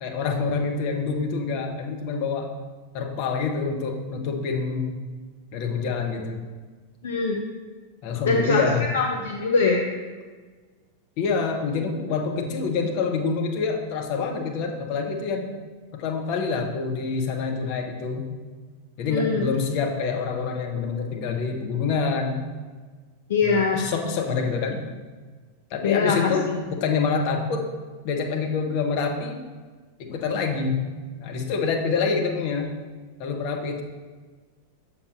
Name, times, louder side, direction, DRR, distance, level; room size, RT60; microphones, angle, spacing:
voice 1, 0.0-2.5 2.9-5.0 5.5-6.4 8.0-8.9 11.2-15.5 15.9-18.3 19.0-22.4 23.4-24.8 25.7-27.7 28.0-29.4 30.0-30.8 31.2-32.7 33.2-33.8, left 5 dB, 45° left, 2 dB, 0.9 m, -26 dB
voice 2, 7.0-7.4 8.3-8.7 8.9-9.9 19.1-19.4 23.3-23.8 25.8-26.6, left 4 dB, 60° left, 1 dB, 0.5 m, -22 dB
7.0 x 6.4 x 2.5 m, 1.4 s
figure-of-eight pair, 90°, 0 cm